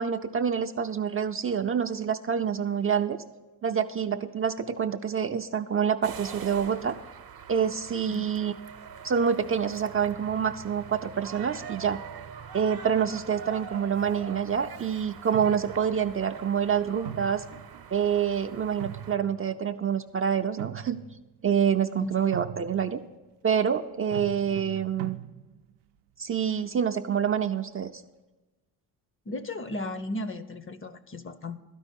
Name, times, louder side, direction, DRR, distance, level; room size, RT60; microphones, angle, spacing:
voice 1, 0.0-3.2 3.6-6.9 7.5-8.5 9.0-12.0 12.5-17.4 17.9-21.0 21.4-23.0 23.4-25.2 26.2-27.9, right 7 dB, 35° right, 7 dB, 0.5 m, -27 dB
sound 1, 6.0-19.2, right 7 dB, 60° right, 0.8 m, -44 dB
sound 2, 13.9-14.4 15.3-16.1 17.1-18.2 18.6-19.8 20.4-21.3 22.3-23.0 24.1-25.7, right 11 dB, 80° right, 0.5 m, -41 dB
voice 2, 29.3-31.6, left 2 dB, 30° left, 12 dB, 0.8 m, -35 dB
12.0 x 5.4 x 8.3 m, 1.1 s
supercardioid pair, 60°, 40 cm